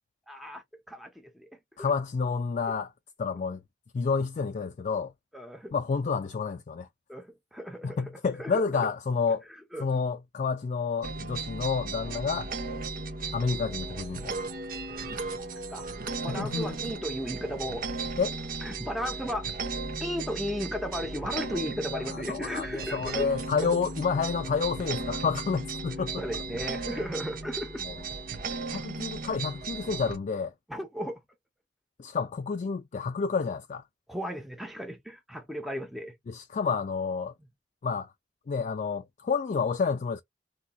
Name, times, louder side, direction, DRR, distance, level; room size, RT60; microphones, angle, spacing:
voice 1, 0.3-1.5 1.8-1.9 5.3-5.7 7.1-8.0 8.4-8.6 9.7-9.9 14.9-15.0 15.7-15.8 16.2-17.9 18.6-19.5 20.0-23.3 23.7-23.8 26.2-27.8 30.7-31.2 34.1-36.1, equal, ahead, 0.7 m, -35 dB
voice 2, 1.8-2.9 3.2-3.6 3.9-5.1 5.7-6.9 7.8-9.4 9.8-12.5 13.3-14.4 16.3-16.8 18.2-18.4 21.9-26.2 27.8-28.0 28.7-30.5 32.0-33.8 36.3-37.3 37.8-38.1 38.5-40.2, left 5 dB, 45° left, 0.3 m, -29 dB
sound 1, 11.0-30.2, right 3 dB, 55° right, 0.8 m, -36 dB
4.1 x 2.7 x 2.2 m
head